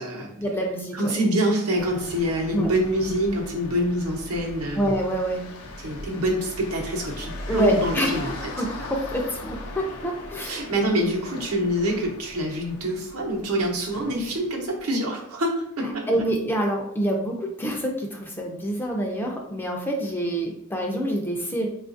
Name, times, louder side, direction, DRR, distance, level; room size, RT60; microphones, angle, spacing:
voice 1, 0.4-1.1 2.5-2.7 4.8-5.5 7.5-8.3 8.6-10.7 15.8-21.7, right 1 dB, 10° left, 0 dB, 0.3 m, -26 dB
voice 2, 0.9-4.9 5.8-8.3 10.4-16.0, right 1 dB, 85° right, -1 dB, 0.8 m, -26 dB
sound 1, 1.8-14.9, left 1 dB, 85° left, 0.6 m, -39 dB
3.7 x 2.4 x 2.5 m, 0.73 s
head